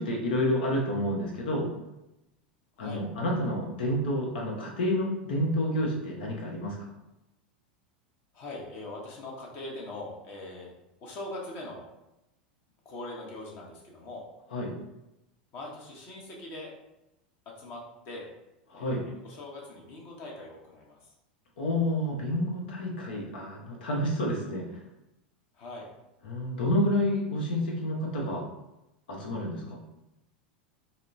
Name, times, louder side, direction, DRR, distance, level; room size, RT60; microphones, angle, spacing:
voice 1, 0.0-1.7 2.8-6.9 14.5-14.7 18.7-19.0 21.6-24.6 26.2-28.5 29.1-29.8, left 1 dB, 75° left, -1 dB, 0.9 m, -29 dB
voice 2, 8.3-10.7 11.0-11.9 12.8-14.2 15.5-16.7 17.6-18.3 18.7-21.1 25.5-25.9, left 2 dB, 45° left, -2 dB, 1.0 m, -41 dB
4.1 x 2.1 x 2.5 m, 0.91 s
hypercardioid pair, 90°, 5 cm